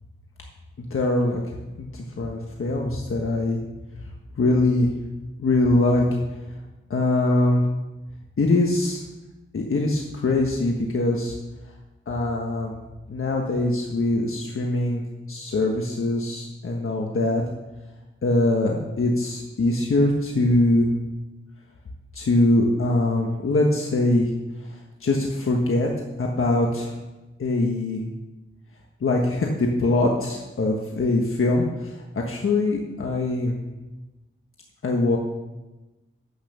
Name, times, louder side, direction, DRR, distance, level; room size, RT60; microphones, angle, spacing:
voice 1, 0.8-1.4 1.8-3.6 4.3-4.9 5.4-6.0 6.9-7.6 8.4-9.0 9.5-11.3 12.1-12.7 13.1-15.0 15.3-17.4 18.2-20.9 22.1-24.3 24.6-25.9 26.2-26.9 27.4-28.0 29.0-33.6 34.8-35.2, left 2 dB, 80° left, 0 dB, 1.4 m, -22 dB
10.0 x 8.3 x 6.8 m, 1.1 s
wide cardioid pair, 75°, 21 cm